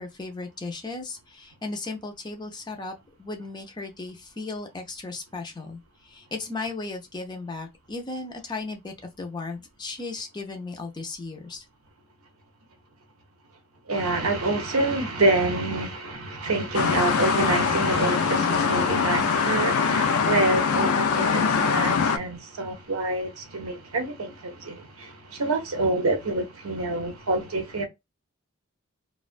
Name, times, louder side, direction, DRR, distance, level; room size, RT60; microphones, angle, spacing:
voice 1, 0.0-11.6, left 3 dB, 20° left, 0.4 m, -36 dB
voice 2, 13.9-27.8, right 2 dB, 80° right, 0.7 m, -27 dB
sound 1, 16.7-22.2, left 5 dB, 85° left, 0.4 m, -23 dB
2.3 x 2.2 x 2.4 m
head